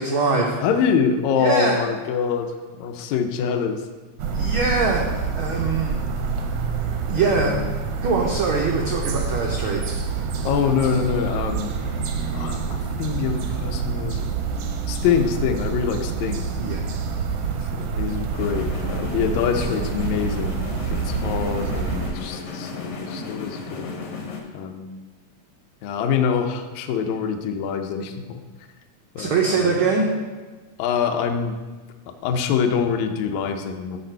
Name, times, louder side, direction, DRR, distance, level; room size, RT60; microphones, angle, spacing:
voice 1, 0.0-0.6 1.4-1.8 4.3-6.0 7.1-7.6 8.0-9.9 16.6-16.8 29.2-30.1, right 4 dB, 90° right, 0 dB, 1.1 m, -23 dB
voice 2, 0.6-3.8 7.2-7.7 10.5-11.7 12.3-14.3 14.9-16.5 17.6-23.9 24.5-24.9 25.8-28.4 29.2-29.8 30.8-31.6 32.2-34.0, left 7 dB, 80° left, 6 dB, 1.9 m, -25 dB
sound 1, 4.2-22.1, right 5 dB, 75° right, 1.5 m, -27 dB
sound 2, 18.3-24.4, left 4 dB, 60° left, 1.9 m, -34 dB
8.0 x 6.6 x 4.4 m, 1.3 s
omnidirectional pair, 3.4 m